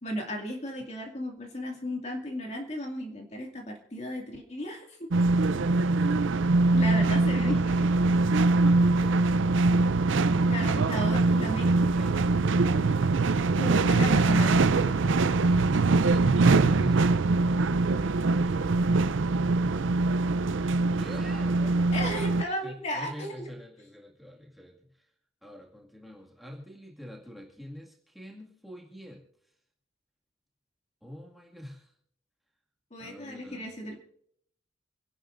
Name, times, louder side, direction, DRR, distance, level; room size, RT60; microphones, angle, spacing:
voice 1, 0.0-4.8 6.7-7.7 10.5-11.7 13.6-14.6 21.9-23.5 32.9-34.0, equal, 35° left, 1 dB, 2.3 m, -35 dB
sound 1, 5.1-22.4, right 3 dB, 75° right, 0.5 m, -23 dB
voice 2, 5.3-6.9 7.3-12.3 15.4-17.6 18.5-18.9 20.9-22.4 22.6-25.1 25.4-29.5 31.0-31.9 33.0-33.7, equal, ahead, -2 dB, 2.0 m, -46 dB
28.5 x 11.5 x 2.6 m, 0.67 s
head